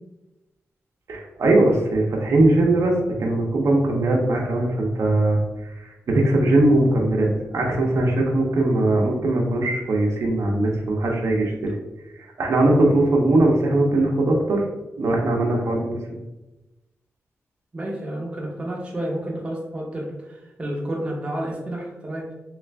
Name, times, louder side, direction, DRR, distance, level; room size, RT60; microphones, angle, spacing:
voice 1, 1.1-5.4 5.8-11.7 12.1-14.6 15.0-16.2, right 2 dB, 75° right, -1 dB, 0.6 m, -20 dB
voice 2, 17.7-22.2, right 1 dB, 25° right, -2 dB, 0.7 m, -30 dB
3.0 x 2.4 x 3.3 m, 1.0 s
wide cardioid pair, 145°, 5 cm